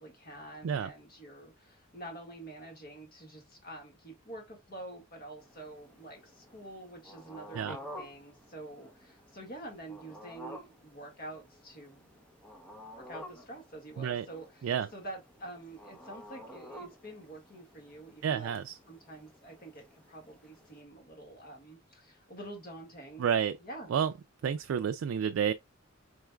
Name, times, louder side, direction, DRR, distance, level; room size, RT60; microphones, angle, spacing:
voice 1, 0.0-12.2 13.0-23.9, right 1 dB, 45° left, 1.7 m, -47 dB
sound 1, 5.4-20.8, equal, 5° left, 0.7 m, -51 dB
voice 2, 18.2-18.8 23.2-23.5 23.9-24.1 24.4-25.5, right 8 dB, 70° right, 0.3 m, -30 dB
4.9 x 3.2 x 2.2 m
head